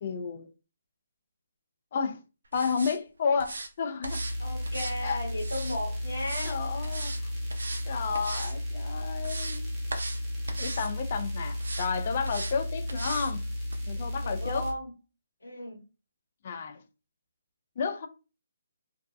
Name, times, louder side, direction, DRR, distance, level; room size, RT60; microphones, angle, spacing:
voice 1, 0.0-0.5 1.9-2.2 2.5-4.2 5.0-5.2 6.4-7.1 7.9-9.7 10.6-13.4 13.9-14.6 16.4-16.8 17.8-18.1, left 5 dB, 45° left, 0.4 m, -31 dB
sound 1, 2.5-3.0 3.4-3.7 4.0-4.4 4.6-5.8 6.2-6.6 6.8-7.2 7.5-7.9 8.1-8.5 9.0-9.6 9.9-10.2 10.5-10.9 11.6-11.9 12.2-12.6 12.9-13.3 13.7-13.8, right 2 dB, 75° right, 0.5 m, -38 dB
sound 2, 4.1-14.7, left 1 dB, 15° right, 0.6 m, -34 dB
voice 2, 4.4-6.6 14.2-14.9 15.4-15.8, left 1 dB, 85° left, 1.3 m, -35 dB
2.6 x 2.1 x 2.3 m
figure-of-eight pair, 150°, 0 cm